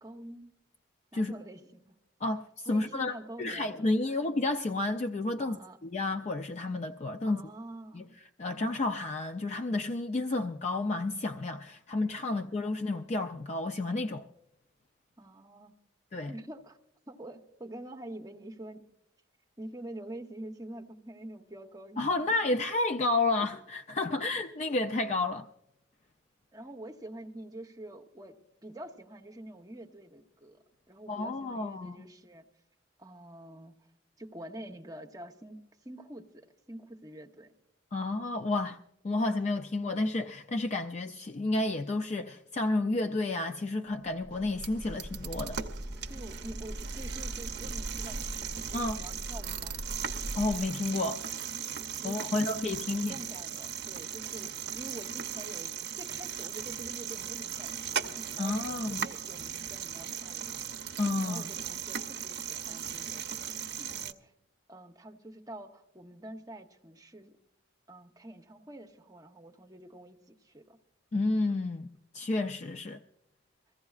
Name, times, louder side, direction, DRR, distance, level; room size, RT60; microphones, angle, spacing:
voice 1, 0.0-0.5 1.1-2.0 2.7-4.2 5.4-5.8 7.2-8.1 8.5-8.7 12.3-12.6 15.2-15.8 16.3-16.8 17.1-18.8 19.6-22.1 24.1-24.2 26.5-28.4 28.6-32.5 33.0-33.7 34.2-37.5 46.1-49.8 52.0-52.5 52.9-60.5 61.2-63.5 63.9-64.3 64.7-67.4 67.9-70.8, right 1 dB, 20° right, 0.8 m, -46 dB
voice 2, 2.2-7.4 7.9-8.1 8.4-14.3 16.1-16.3 22.0-25.5 31.1-32.0 37.9-38.8 39.0-45.6 48.7-49.0 50.3-51.2 52.0-53.1 58.4-59.1 61.0-61.5 63.8-63.9 71.1-73.0, left 2 dB, 35° left, 0.4 m, -31 dB
sound 1, 44.1-50.6, equal, 10° left, 1.0 m, -40 dB
sound 2, 44.3-64.1, right 8 dB, 55° right, 0.6 m, -38 dB
23.0 x 15.0 x 2.4 m
head